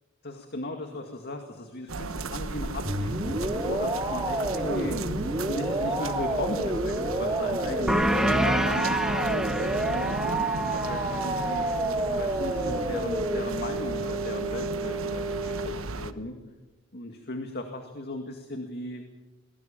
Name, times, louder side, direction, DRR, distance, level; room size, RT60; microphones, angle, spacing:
voice 1, 0.2-5.0 5.4-10.1 10.7-11.7 12.1-16.3 16.9-19.1, left 1 dB, 50° left, 4 dB, 2.2 m, -36 dB
sound 1, 1.9-16.1, right 3 dB, 80° right, 1.3 m, -35 dB
sound 2, 2.9-15.7, right 2 dB, 20° right, 2.1 m, -29 dB
sound 3, 7.9-13.1, equal, 5° right, 1.4 m, -29 dB
24.0 x 19.5 x 7.2 m, 1.1 s
head